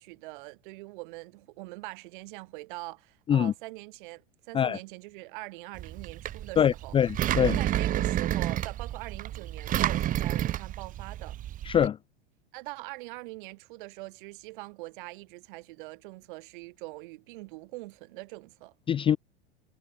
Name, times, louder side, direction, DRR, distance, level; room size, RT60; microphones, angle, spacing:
voice 1, 0.0-7.0 7.4-11.4 12.5-18.7, right 23 dB, 50° right, 4.0 m, -43 dB
Engine, 5.8-11.9, right 12 dB, 25° right, 1.1 m, -30 dB
voice 2, 6.6-7.6 11.6-12.0 18.9-19.2, left 9 dB, 15° left, 0.7 m, -24 dB
figure-of-eight pair, 90°, 33 cm